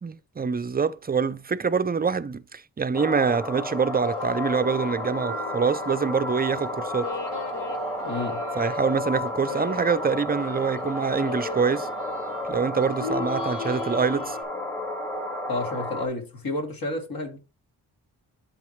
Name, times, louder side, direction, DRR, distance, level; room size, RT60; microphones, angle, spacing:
voice 1, 0.0-7.1 8.5-11.9 12.5-14.4, right 5 dB, 25° right, 0.5 m, -25 dB
sound 1, 2.9-16.1, left 1 dB, 5° left, 1.2 m, -32 dB
sound 2, 3.2-14.4, left 5 dB, 90° left, 1.3 m, -38 dB
voice 2, 8.0-8.4 15.5-17.4, left 2 dB, 60° left, 2.7 m, -30 dB
11.5 x 4.0 x 3.1 m
cardioid pair, 65°, 40 cm